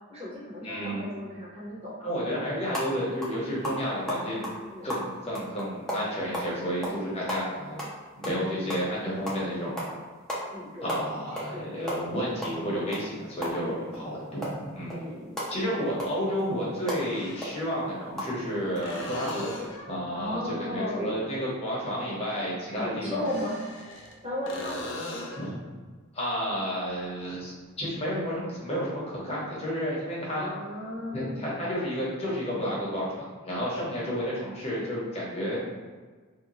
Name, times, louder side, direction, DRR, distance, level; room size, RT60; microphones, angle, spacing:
voice 1, 0.1-2.1 3.6-3.8 4.7-5.0 5.9-6.0 6.8-7.3 10.5-12.1 13.6-14.0 14.9-15.4 15.7-15.9 20.1-21.4 21.7-21.8 22.8-23.6 24.2-24.9 30.3-31.6, left 1 dB, 30° right, -8 dB, 1.0 m, -36 dB
voice 2, 0.6-1.0 2.0-4.5 4.8-7.8 8.2-9.8 10.8-13.7 14.0-15.0 15.5-19.5 19.9-23.3 25.4-25.5 26.1-30.5 31.1-35.6, equal, 30° left, -6 dB, 0.8 m, -31 dB
sound 1, 2.7-2.9 3.2-3.4 3.6-6.5 6.8-7.0 7.3-8.9 9.3-9.4 9.7-9.9 10.3-10.4 10.7-11.5 11.8-14.0 14.4-18.3 18.7-18.8 19.2-19.3, equal, 5° left, 0.5 m, -34 dB
sound 2, 17.0-17.8 18.8-20.0 23.1-24.1 24.5-25.5 29.2-29.3, left 1 dB, 60° left, 0.5 m, -39 dB
2.6 x 2.2 x 2.9 m, 1.4 s
head